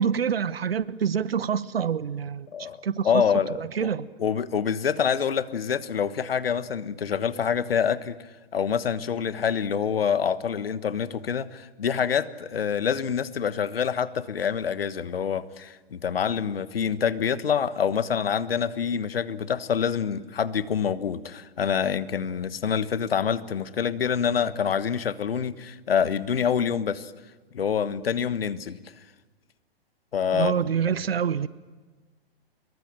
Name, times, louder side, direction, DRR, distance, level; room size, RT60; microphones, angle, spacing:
voice 1, 0.0-3.2 3.5-4.1 30.3-31.5, right 7 dB, 70° right, 1.1 m, -26 dB
voice 2, 3.0-3.9 4.2-8.2 8.5-27.1 27.5-28.8 30.1-30.5, left 7 dB, 70° left, 1.4 m, -26 dB
25.5 x 22.5 x 9.0 m
figure-of-eight pair, 115°, 31 cm